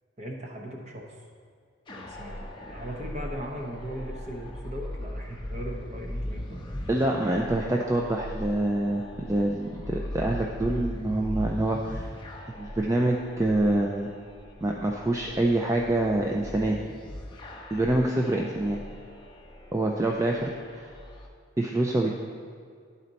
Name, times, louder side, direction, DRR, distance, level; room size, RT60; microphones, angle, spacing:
voice 1, 0.2-1.2 1.9-6.7, equal, 35° right, 1 dB, 0.8 m, -38 dB
sound 1, 1.9-21.3, left 1 dB, 25° left, 0.6 m, -39 dB
voice 2, 6.9-12.1 12.6-14.1 14.6-16.8 17.7-18.8 19.7-20.9 21.6-22.1, right 1 dB, 15° right, 0 dB, 0.3 m, -26 dB
11.0 x 4.2 x 4.0 m, 2.2 s
head